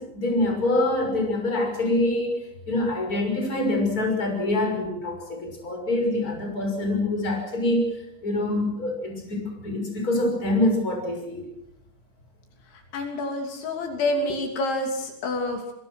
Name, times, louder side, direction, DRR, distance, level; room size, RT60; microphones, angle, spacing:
voice 1, 0.0-11.5, left 1 dB, 20° left, 3 dB, 6.0 m, -25 dB
voice 2, 12.9-15.7, left 2 dB, 75° left, 4 dB, 5.3 m, -28 dB
25.5 x 23.5 x 6.3 m, 0.79 s
omnidirectional pair, 5.4 m